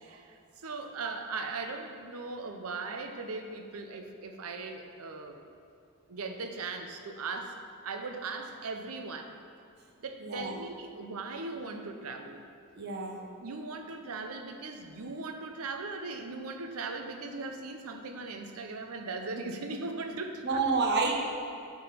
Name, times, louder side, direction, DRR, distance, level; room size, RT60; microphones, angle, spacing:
voice 1, 0.0-5.4 6.1-7.6 7.8-9.3 10.0-12.4 13.2-20.6, right 3 dB, 80° right, 5 dB, 0.7 m, -39 dB
voice 2, 10.2-10.5 12.8-13.2 20.4-21.2, right 4 dB, 50° right, 0 dB, 0.9 m, -28 dB
8.8 x 3.8 x 5.7 m, 2.5 s
head